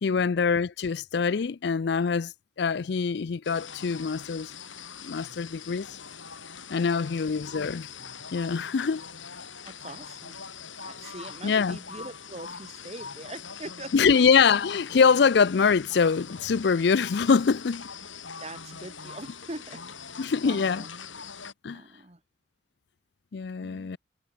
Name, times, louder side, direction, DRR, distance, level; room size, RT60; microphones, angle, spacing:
voice 1, 0.0-4.5 5.0-5.9 6.7-7.9 8.3-9.0 11.4-11.8 13.9-17.9 20.2-20.8 21.6-21.8 23.3-24.0, left 5 dB, 55° left, 0.4 m, -24 dB
sound 1, 3.4-21.5, left 6 dB, 80° left, 6.2 m, -43 dB
voice 2, 9.6-10.4 10.8-14.3 18.4-20.9 21.7-22.2 23.6-24.0, right 2 dB, 30° right, 1.8 m, -43 dB
head